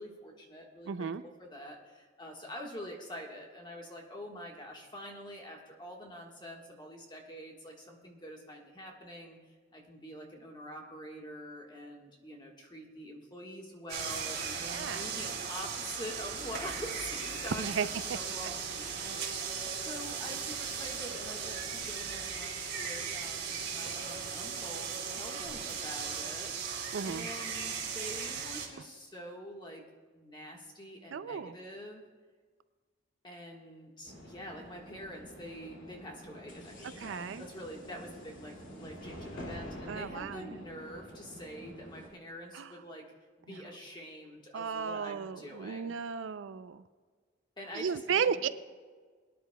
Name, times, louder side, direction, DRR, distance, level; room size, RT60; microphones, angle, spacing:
voice 1, 0.0-1.1 1.4-9.4 9.7-26.5 27.0-29.8 30.1-32.0 33.2-43.1 43.5-45.9 47.6-48.4, equal, 25° left, 0 dB, 1.4 m, -46 dB
voice 2, 0.9-1.2 14.6-15.1 17.6-17.9 26.9-27.3 31.1-31.5 37.0-37.4 39.9-40.5 42.5-42.7 43.5-43.6 44.5-46.8 47.7-48.5, right 6 dB, 75° right, 13 dB, 0.4 m, -34 dB
sound 1, 13.9-28.7, right 6 dB, 55° right, 2.2 m, -37 dB
sound 2, 34.0-42.1, equal, 75° left, 2.4 m, -47 dB
22.0 x 10.0 x 2.2 m, 1.5 s
head